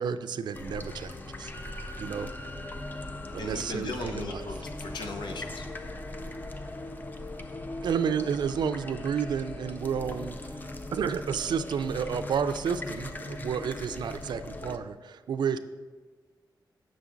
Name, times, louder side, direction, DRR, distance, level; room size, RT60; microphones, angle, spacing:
voice 1, 0.0-1.5 2.0-2.3 3.3-4.5 7.8-10.6 10.9-15.6, right 7 dB, 70° right, 11 dB, 0.4 m, -31 dB
sound 1, 0.5-14.8, left 2 dB, 25° left, 0.4 m, -39 dB
voice 2, 3.4-5.6, left 3 dB, 80° left, 5 dB, 0.8 m, -37 dB
7.2 x 6.3 x 3.8 m, 1.4 s
wide cardioid pair, 150°, 8 cm